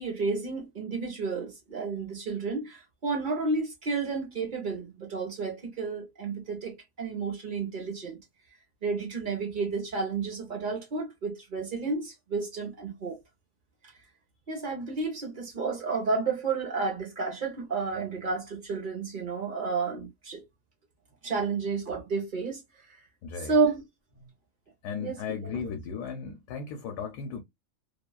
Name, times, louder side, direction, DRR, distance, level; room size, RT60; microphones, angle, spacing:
voice 1, 0.0-8.2 8.8-13.2 14.5-20.4 21.2-22.6 23.5-23.8 24.1-24.3 25.0-25.2 25.4-25.5, right 4 dB, 40° right, 0.8 m, -31 dB
voice 2, 23.2-23.5 24.8-27.4, left 6 dB, 75° left, 1.1 m, -36 dB
2.8 x 2.3 x 2.3 m
omnidirectional pair, 1.7 m